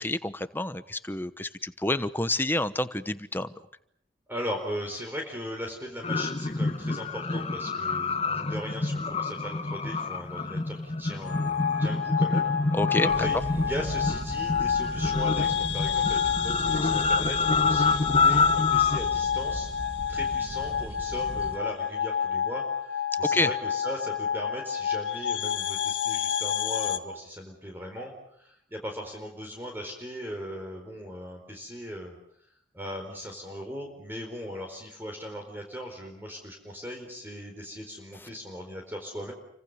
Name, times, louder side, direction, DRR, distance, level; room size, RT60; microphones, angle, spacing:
voice 1, 0.0-3.5 12.7-13.3 23.2-23.5, left 2 dB, 10° left, 12 dB, 1.1 m, -28 dB
voice 2, 4.3-12.5 13.1-19.7 20.1-28.1 28.4-32.2 32.7-39.3, equal, 10° right, 2 dB, 4.4 m, -38 dB
sound 1, 6.0-19.0, left 3 dB, 30° left, 1.1 m, -27 dB
sound 2, 11.2-27.0, left 8 dB, 75° left, 2.1 m, -29 dB
sound 3, 13.1-21.6, right 1 dB, 30° right, 1.4 m, -38 dB
29.5 x 25.0 x 6.8 m, 0.71 s
head